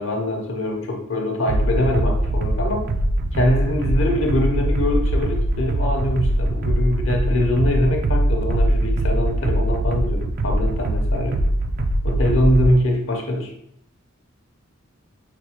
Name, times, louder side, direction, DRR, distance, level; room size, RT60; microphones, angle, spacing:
voice 1, 0.0-2.9 3.3-11.4 12.0-13.5, left 1 dB, 65° left, 2 dB, 0.8 m, -23 dB
sound 1, 1.5-12.7, right 1 dB, 45° right, 0.3 m, -22 dB
5.9 x 2.2 x 2.9 m, 0.72 s
head